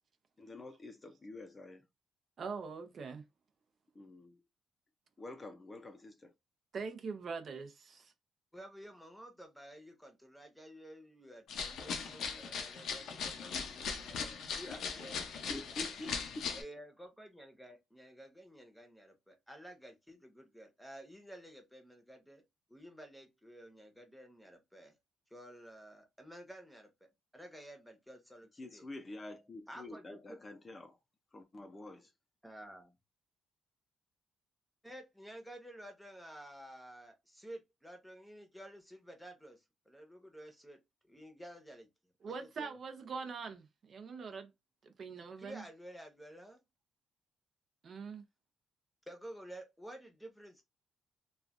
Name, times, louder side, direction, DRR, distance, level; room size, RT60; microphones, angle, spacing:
voice 1, 0.4-1.8 3.9-4.4 5.2-6.3 15.5-16.4 28.5-31.0 31.3-32.1, left 2 dB, 30° left, 0.6 m, -47 dB
voice 2, 2.4-3.2 6.7-8.1 42.2-44.5 44.8-45.6 47.8-48.2, right 5 dB, 50° right, 0.6 m, -43 dB
voice 3, 8.5-15.2 16.5-22.4 22.7-24.9 25.3-28.8 29.7-30.4 32.4-32.9 34.8-39.6 39.9-40.8 41.1-41.9 42.3-42.8 45.4-46.6 49.1-50.6, right 1 dB, ahead, 1.0 m, -52 dB
sound 1, 11.5-16.6, left 5 dB, 75° left, 0.6 m, -39 dB
3.1 x 2.4 x 2.5 m
cardioid pair, 90°, 0 cm